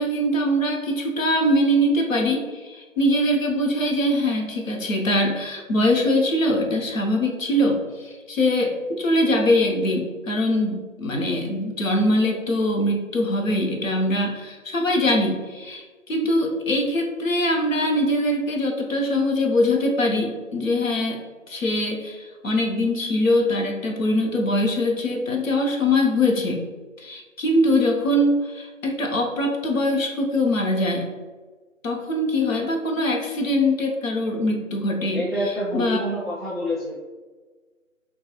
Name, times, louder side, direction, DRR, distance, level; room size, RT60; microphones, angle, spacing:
voice 1, 0.0-21.2 21.5-26.6 27.0-31.1 31.8-36.0, left 1 dB, 75° left, 0 dB, 0.8 m, -22 dB
voice 2, 35.1-37.0, equal, ahead, -8 dB, 0.4 m, -27 dB
3.1 x 2.2 x 2.8 m, 1.3 s
figure-of-eight pair, 170°, 41 cm